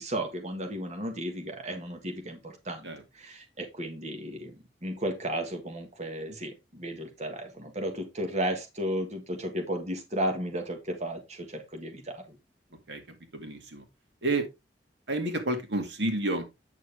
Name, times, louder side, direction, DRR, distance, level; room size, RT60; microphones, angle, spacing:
voice 1, 0.0-2.9 3.1-4.5 4.8-12.4, equal, 40° right, 4 dB, 1.7 m, -34 dB
voice 2, 12.9-13.8 14.2-14.5 15.1-16.5, right 2 dB, 85° right, 5 dB, 2.1 m, -30 dB
9.0 x 6.5 x 3.4 m, 0.23 s
head